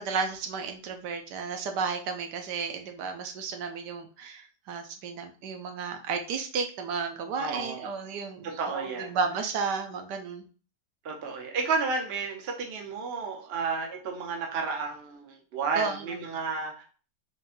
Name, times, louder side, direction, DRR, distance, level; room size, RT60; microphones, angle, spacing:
voice 1, 0.0-10.4 15.8-16.1, right 5 dB, 80° right, 5 dB, 1.3 m, -33 dB
voice 2, 7.4-8.0 8.4-9.1 11.0-16.8, right 4 dB, 50° right, 1 dB, 0.8 m, -32 dB
4.1 x 3.8 x 2.6 m, 0.39 s
omnidirectional pair, 1.8 m